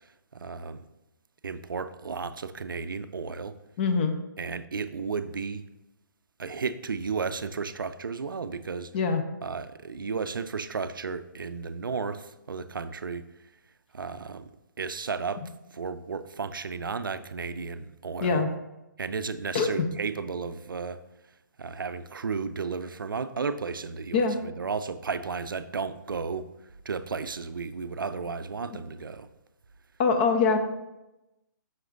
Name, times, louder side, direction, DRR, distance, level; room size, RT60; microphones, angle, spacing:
voice 1, 0.3-0.8 1.4-3.6 4.4-5.6 6.4-8.9 9.4-13.2 13.9-14.5 14.8-18.4 19.0-21.0 21.6-26.4 26.9-29.3, right 5 dB, 85° right, 12 dB, 0.4 m, -33 dB
voice 2, 3.8-4.1 8.9-9.2 15.4-15.5 18.2-18.5 19.5-19.9 24.1-24.4 28.7-28.8 30.0-30.6, left 5 dB, 30° left, 7 dB, 0.6 m, -24 dB
7.7 x 5.8 x 2.5 m, 0.97 s
hypercardioid pair, 145°, 11 cm